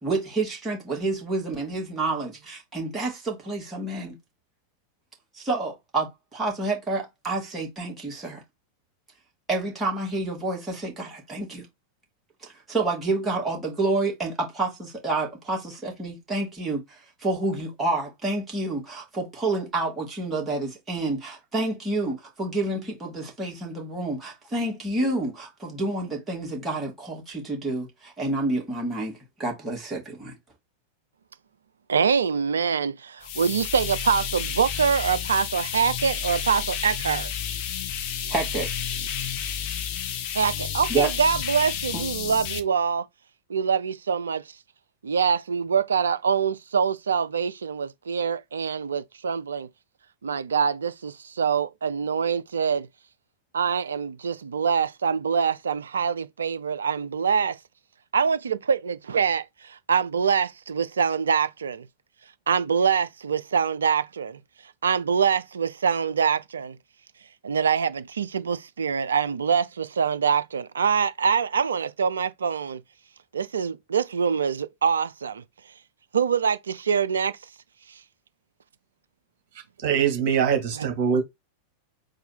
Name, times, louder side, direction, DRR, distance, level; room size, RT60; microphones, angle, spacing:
voice 1, 0.0-4.2 5.3-8.4 9.5-11.7 12.4-30.3 38.3-38.7 40.9-41.1 41.9-42.0, right 2 dB, 15° right, 2.2 m, -29 dB
voice 2, 31.9-37.3 40.3-43.1 43.5-44.4 45.0-49.7 50.2-52.9 53.5-57.6 58.1-61.9 62.5-64.4 64.8-66.8 67.4-72.8 73.3-75.4 76.1-77.4 80.8-80.9, right 6 dB, 70° right, 0.4 m, -24 dB
sound 1, 33.2-42.6, left 8 dB, 45° left, 0.7 m, -31 dB
voice 3, 79.8-81.2, right 7 dB, 45° right, 1.5 m, -22 dB
4.0 x 2.6 x 4.2 m
figure-of-eight pair, 90°, 0 cm